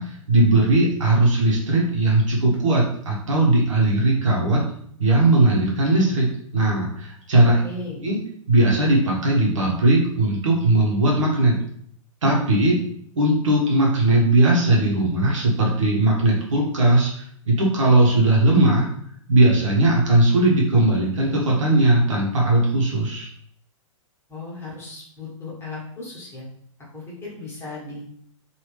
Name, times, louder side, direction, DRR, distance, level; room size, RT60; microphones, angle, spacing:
voice 1, 0.0-4.6 5.0-7.6 8.0-8.2 8.5-11.6 12.2-12.8 13.2-18.9 19.3-23.3, right 2 dB, 65° right, -3 dB, 1.1 m, -18 dB
voice 2, 7.6-8.0 24.3-26.4 26.9-28.0, left 3 dB, 15° left, -7 dB, 1.4 m, -36 dB
3.0 x 2.7 x 3.3 m, 0.65 s
figure-of-eight pair, 110°, 17 cm